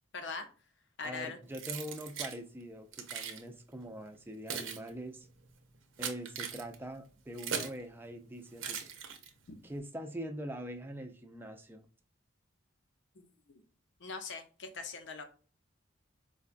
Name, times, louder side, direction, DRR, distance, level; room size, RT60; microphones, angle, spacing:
voice 1, 0.1-0.5 1.0-1.4 9.5-9.6 13.2-13.6 14.0-15.2, left 4 dB, 65° left, 7 dB, 0.6 m, -42 dB
voice 2, 1.0-5.3 6.0-8.8 9.6-11.9, right 1 dB, 10° right, 5 dB, 0.3 m, -43 dB
Keys jangling, 1.5-2.4 2.9-3.4 4.1-7.8 8.6-9.5, right 7 dB, 90° right, 0.6 m, -40 dB
4.6 x 2.2 x 2.5 m, 0.39 s
head